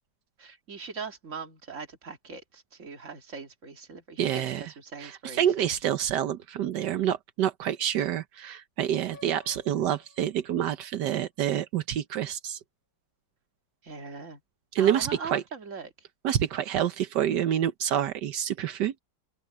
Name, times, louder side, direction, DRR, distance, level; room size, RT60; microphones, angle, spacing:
voice 1, 0.4-5.5 13.8-14.4 14.8-15.9, right 5 dB, 45° right, 2.3 m, -40 dB
voice 2, 4.2-4.6 5.0-12.6 14.7-15.4 16.2-18.9, right 10 dB, 85° right, 1.5 m, -27 dB
Piano, 9.1-11.1, left 4 dB, 60° left, 5.7 m, -55 dB
open air
omnidirectional pair, 1.8 m